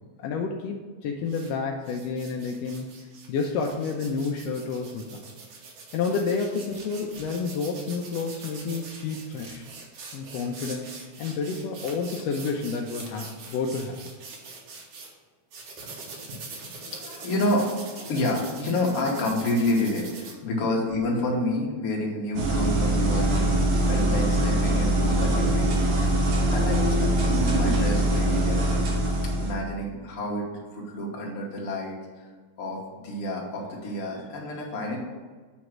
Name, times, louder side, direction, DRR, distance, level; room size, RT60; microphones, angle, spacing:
voice 1, 0.2-2.9 3.3-5.2 5.9-9.6 10.1-14.0 20.5-20.7, left 4 dB, 80° left, 1 dB, 1.5 m, -30 dB
sound 1, 1.2-1.5 1.8-15.1 15.5-20.3, right 3 dB, 65° right, 2.0 m, -43 dB
voice 2, 16.8-26.2 26.5-28.9 29.3-32.0 32.6-35.0, left 1 dB, 55° left, -2 dB, 2.0 m, -29 dB
sound 2, 22.4-29.5, right 1 dB, 85° right, 2.7 m, -23 dB
7.7 x 3.1 x 6.0 m, 1.5 s
omnidirectional pair, 3.3 m